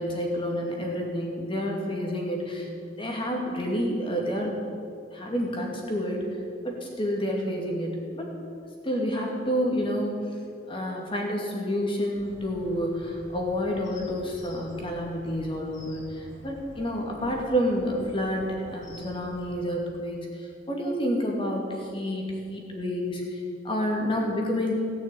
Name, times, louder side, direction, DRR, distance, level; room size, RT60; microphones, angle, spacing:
voice 1, 0.0-2.7 3.0-4.5 5.1-6.3 6.6-8.3 8.8-10.1 10.7-24.7, equal, 30° left, 0 dB, 2.4 m, -29 dB
sound 1, 12.1-19.6, equal, 85° left, 3.1 m, -48 dB
18.0 x 6.5 x 8.4 m, 2.5 s
head